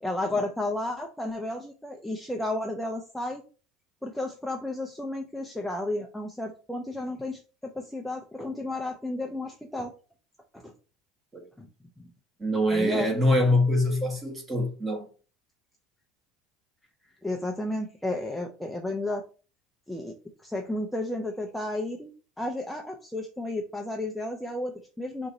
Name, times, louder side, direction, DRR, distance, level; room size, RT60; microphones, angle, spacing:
voice 1, 0.0-3.4 4.0-9.9 10.5-10.7 11.6-11.7 12.7-13.1 17.2-19.2 19.9-20.1 20.4-22.1 22.4-25.3, left 2 dB, 5° left, 0.4 m, -32 dB
voice 2, 12.4-15.0, left 1 dB, 20° right, 1.2 m, -24 dB
3.9 x 2.6 x 4.0 m
cardioid pair, 145°, 0 cm